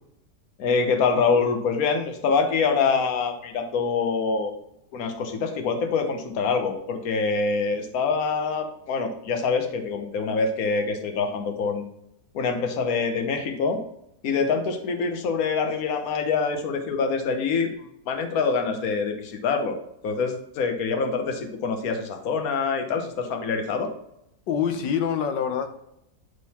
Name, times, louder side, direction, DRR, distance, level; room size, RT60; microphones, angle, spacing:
voice 1, 0.6-4.5 4.9-11.8 12.3-13.8 14.2-19.8 20.0-23.9, left 5 dB, 60° left, 5 dB, 1.3 m, -25 dB
voice 2, 24.5-25.7, left 8 dB, 80° left, 7 dB, 1.5 m, -25 dB
9.3 x 3.8 x 4.2 m, 0.79 s
omnidirectional pair, 1.9 m